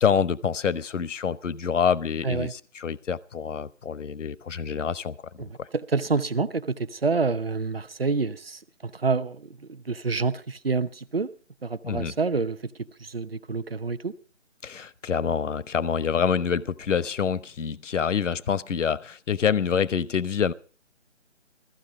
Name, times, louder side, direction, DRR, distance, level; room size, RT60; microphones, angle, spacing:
voice 1, 0.0-5.2 5.6-5.7 11.8-12.1 14.6-20.5, left 7 dB, 75° left, 0.8 m, -26 dB
voice 2, 5.4-11.3 11.6-14.1, right 4 dB, 50° right, 0.8 m, -28 dB
15.0 x 14.5 x 5.0 m
figure-of-eight pair, 180°, 37 cm